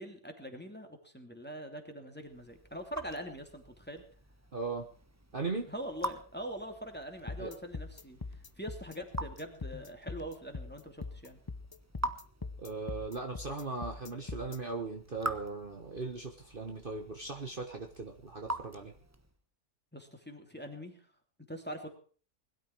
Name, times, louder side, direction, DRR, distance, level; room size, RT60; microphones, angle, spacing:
voice 1, 0.0-4.0 5.7-8.2 8.6-11.4 19.9-21.0 21.5-21.9, equal, 5° left, 4 dB, 2.8 m, -43 dB
Raindrop / Drip, 2.2-19.4, right 1 dB, 10° right, 1.0 m, -45 dB
voice 2, 4.5-4.9 5.3-5.7 7.4-7.5 12.6-18.9, right 3 dB, 35° right, 4 dB, 1.5 m, -38 dB
sound 1, 7.3-14.6, left 3 dB, 30° left, 0.4 m, -42 dB
21.0 x 12.5 x 4.7 m, 0.41 s
omnidirectional pair, 1.6 m